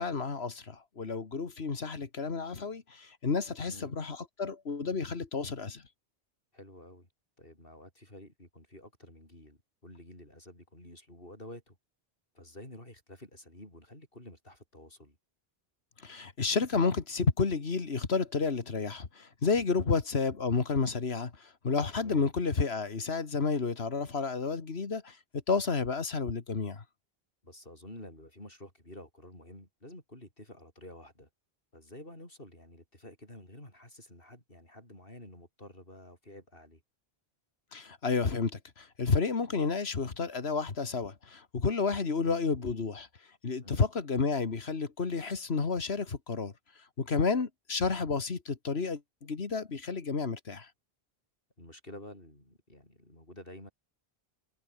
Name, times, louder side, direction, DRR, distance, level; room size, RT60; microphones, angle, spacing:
voice 1, 0.0-5.8 16.0-25.2 25.5-26.8 37.7-43.1 43.4-46.5 47.0-50.7, left 4 dB, 85° left, 2.1 m, -31 dB
voice 2, 6.5-7.1 7.4-11.8 12.3-15.2 19.8-19.9 21.9-22.3 27.4-31.3 31.7-36.8 43.6-43.9 47.1-47.3 51.6-53.7, left 1 dB, 60° left, 8.4 m, -50 dB
omnidirectional pair, 1.0 m